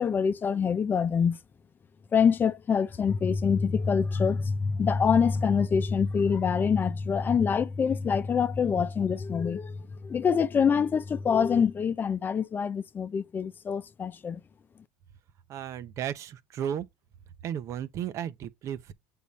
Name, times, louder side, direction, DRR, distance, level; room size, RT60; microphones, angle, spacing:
voice 1, 0.0-1.4 2.1-14.4, left 6 dB, 30° left, 0.8 m, -25 dB
voice 2, 15.5-16.9 17.4-18.9, right 9 dB, 50° right, 0.9 m, -34 dB
8.3 x 3.7 x 4.2 m
supercardioid pair, 95°, 7 cm